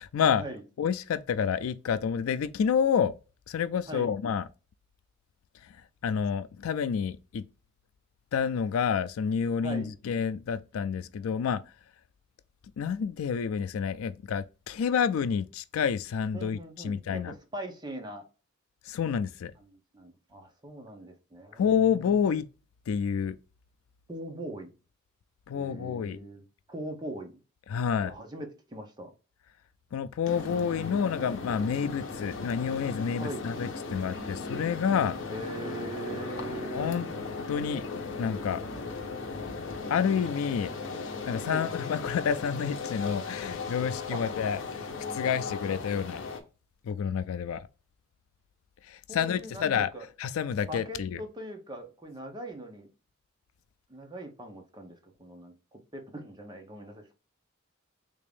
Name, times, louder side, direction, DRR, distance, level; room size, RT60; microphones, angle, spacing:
voice 1, 0.0-0.5 0.8-3.1 3.5-4.5 5.6-7.5 8.3-11.6 12.8-17.3 18.8-19.5 21.6-22.5 22.9-23.4 25.5-26.3 27.7-28.1 29.9-35.2 36.7-37.1 37.5-37.8 38.2-38.6 39.9-40.7 41.3-46.3 46.8-47.7 48.8-49.9 50.2-51.2, left 7 dB, 90° left, 0.3 m, -29 dB
voice 2, 9.6-9.9 16.3-18.2 19.7-21.6 24.1-24.7 25.5-26.4 26.7-27.3 28.0-29.1 33.2-33.5 35.3-37.0 41.5-41.7 44.1-44.2 49.1-50.1 50.7-52.9 53.9-57.1, right 1 dB, 20° right, 0.8 m, -41 dB
sound 1, 30.2-46.4, left 4 dB, 65° left, 0.7 m, -37 dB
3.6 x 2.5 x 3.4 m
head